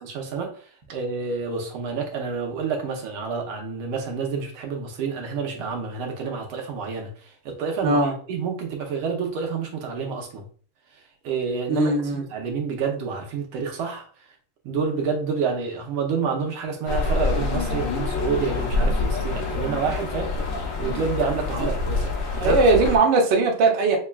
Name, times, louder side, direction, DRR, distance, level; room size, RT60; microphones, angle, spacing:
voice 1, 0.0-8.0 8.3-10.4 10.9-11.9 12.3-14.1 14.6-20.5 20.8-22.1 22.4-22.6, right 5 dB, 85° right, 1 dB, 1.6 m, -28 dB
voice 2, 7.8-8.1 11.7-12.2 22.4-24.0, right 3 dB, 65° right, 0 dB, 1.4 m, -19 dB
sound 1, 16.9-23.0, left 3 dB, 70° left, 1.4 m, -26 dB
5.6 x 2.2 x 2.2 m, 0.43 s
omnidirectional pair, 2.4 m